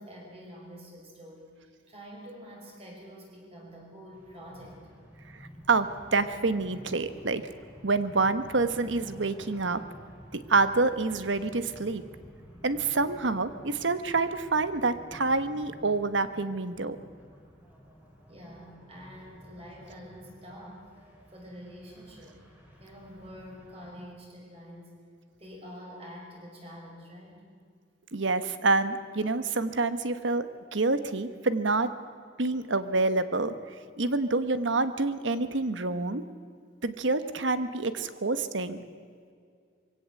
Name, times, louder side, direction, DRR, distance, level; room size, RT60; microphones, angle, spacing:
voice 1, 0.0-4.8 18.3-20.9 21.3-22.4 22.8-25.0 25.4-27.5, equal, 30° right, -1 dB, 5.7 m, -47 dB
sound 1, 4.1-24.0, equal, 10° right, 3.9 m, -51 dB
voice 2, 5.7-7.4 7.8-9.8 10.3-12.0 12.6-17.0 28.1-31.9 32.4-36.2 36.8-38.8, right 3 dB, 85° right, 11 dB, 1.2 m, -27 dB
23.0 x 16.5 x 7.8 m, 2.2 s
head